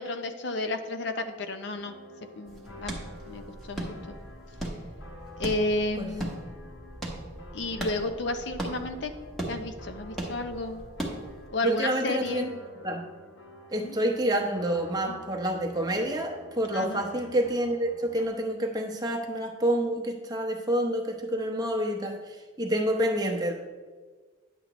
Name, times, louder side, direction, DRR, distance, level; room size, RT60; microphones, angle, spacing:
voice 1, 0.0-1.9 2.4-3.0 3.2-4.1 5.4-6.4 7.5-9.1 9.5-10.8 11.5-12.5 13.7-14.0 15.1-15.2 16.7-17.0, left 2 dB, 60° left, 8 dB, 0.6 m, -32 dB
sound 1, 1.7-18.3, left 1 dB, 75° left, 1.0 m, -49 dB
sound 2, 2.5-11.5, right 1 dB, ahead, 1.1 m, -38 dB
voice 2, 11.6-12.5 12.8-13.0 13.7-23.5, right 1 dB, 20° right, 1 dB, 0.9 m, -28 dB
9.9 x 7.3 x 3.0 m, 1.4 s
head